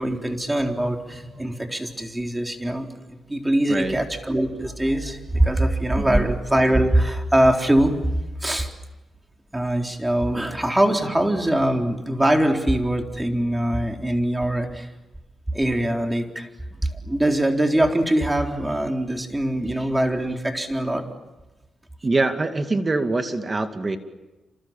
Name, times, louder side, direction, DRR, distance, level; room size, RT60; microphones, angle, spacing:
voice 1, 0.0-2.9 3.3-8.0 8.4-8.7 9.5-14.9 15.5-16.5 16.8-21.0, right 1 dB, 15° right, 3 dB, 3.9 m, -22 dB
voice 2, 6.0-6.3 22.0-24.0, right 3 dB, 30° right, 7 dB, 2.4 m, -24 dB
28.0 x 27.0 x 7.4 m, 1.1 s
cardioid pair, 75°, 0 cm